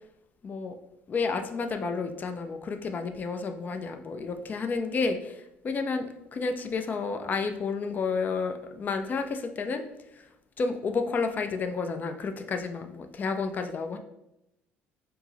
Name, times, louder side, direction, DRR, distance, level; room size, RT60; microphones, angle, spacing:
voice 1, 0.4-0.8 1.1-6.0 6.3-9.8 10.6-14.0, left 4 dB, 35° left, 6 dB, 0.4 m, -31 dB
4.4 x 2.0 x 3.8 m, 0.87 s
supercardioid pair, 85°, 5 cm